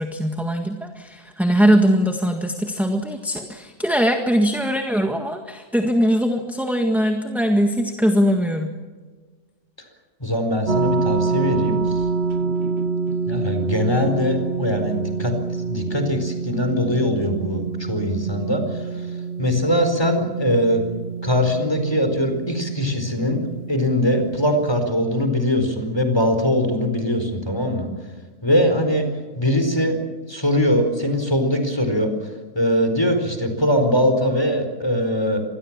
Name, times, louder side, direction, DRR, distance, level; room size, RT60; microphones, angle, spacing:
voice 1, 0.0-8.7, equal, ahead, 4 dB, 1.6 m, -21 dB
voice 2, 10.2-12.0 13.3-15.3 15.7-19.1 19.4-20.8 21.2-23.4 23.7-27.9 28.4-29.1 29.4-30.0 30.3-32.1 32.5-35.4, equal, 15° left, 6 dB, 4.5 m, -21 dB
sound 1, 10.7-24.8, right 4 dB, 50° right, 1.0 m, -27 dB
26.5 x 20.5 x 7.5 m, 1.4 s
omnidirectional pair, 1.6 m